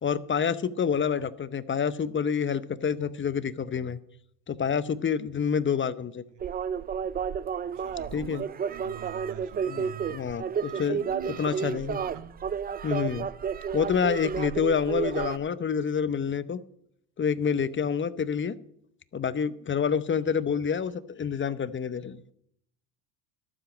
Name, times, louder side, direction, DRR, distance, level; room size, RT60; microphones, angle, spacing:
voice 1, 0.0-4.0 4.5-6.2 8.1-8.4 9.7-12.0 12.8-13.3 13.7-16.6 17.2-18.6 19.1-22.2, left 7 dB, 25° left, 0.8 m, -28 dB
sound 1, 6.4-15.4, right 7 dB, 20° right, 0.4 m, -31 dB
voice 2, 7.6-10.2 10.7-12.3, right 11 dB, 60° right, 2.1 m, -45 dB
12.5 x 7.7 x 6.2 m
supercardioid pair, 90°, 47 cm